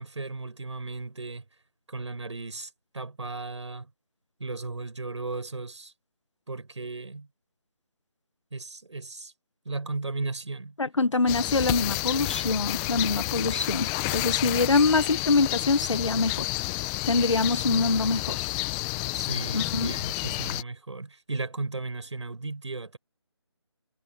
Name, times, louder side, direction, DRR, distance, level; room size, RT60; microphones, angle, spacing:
voice 1, 0.0-1.4 1.9-3.9 4.4-5.9 6.5-7.3 8.5-9.3 9.6-10.7 19.1-23.0, right 3 dB, 70° right, 6.8 m, -35 dB
voice 2, 10.8-18.5 19.5-20.0, left 3 dB, 80° left, 1.6 m, -25 dB
sound 1, 11.3-20.6, left 22 dB, 10° left, 0.8 m, -30 dB
figure-of-eight pair, 170°, 15 cm